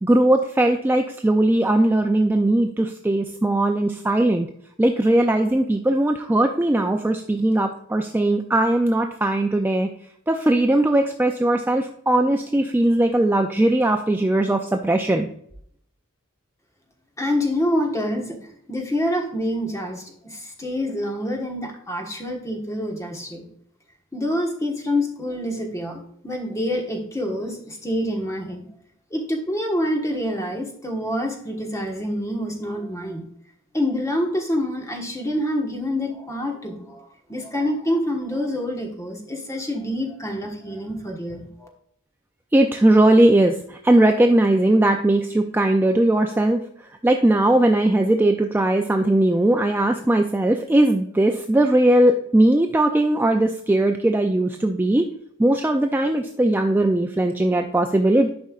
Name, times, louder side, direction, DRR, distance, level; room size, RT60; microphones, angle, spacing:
voice 1, 0.0-4.5 4.8-9.9 10.3-15.3 42.5-46.6 47.0-55.0 55.4-58.3, right 1 dB, 10° right, 4 dB, 0.3 m, -19 dB
voice 2, 17.2-18.4 18.7-23.5 24.1-28.7 29.1-33.2 33.7-41.7, left 1 dB, 15° left, 1 dB, 1.3 m, -26 dB
11.0 x 5.3 x 2.4 m, 0.70 s
head